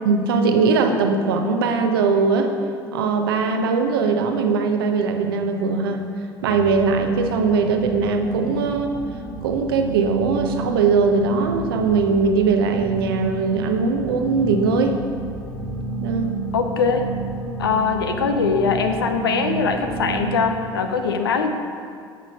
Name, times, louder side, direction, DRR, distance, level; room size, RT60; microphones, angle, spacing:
voice 1, 0.0-2.5 2.9-6.0 6.4-9.0 9.4-15.0 16.0-16.3, right 4 dB, 70° right, 5 dB, 0.7 m, -20 dB
sound 1, 6.4-20.5, right 3 dB, 45° left, 1.7 m, -30 dB
voice 2, 16.5-17.1 17.6-21.5, left 5 dB, 75° left, 6 dB, 0.6 m, -21 dB
7.2 x 6.5 x 5.4 m, 2.2 s
figure-of-eight pair, 60°, 13 cm